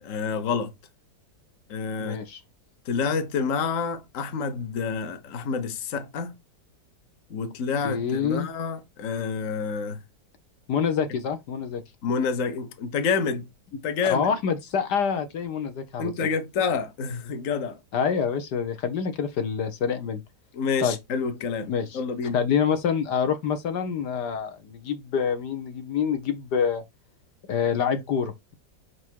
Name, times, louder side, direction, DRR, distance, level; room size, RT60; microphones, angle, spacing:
voice 1, 0.0-0.7 1.7-2.2 2.9-6.3 7.3-10.0 12.0-13.4 13.8-14.3 16.0-17.8 20.5-21.7 21.9-22.4, left 5 dB, 50° left, 1.3 m, -28 dB
voice 2, 2.0-2.4 7.8-8.5 10.7-11.8 14.0-16.1 17.9-20.2 20.8-21.0 21.7-26.8 27.5-28.5, left 7 dB, 70° left, 1.6 m, -26 dB
5.6 x 4.9 x 4.5 m
omnidirectional pair, 1.9 m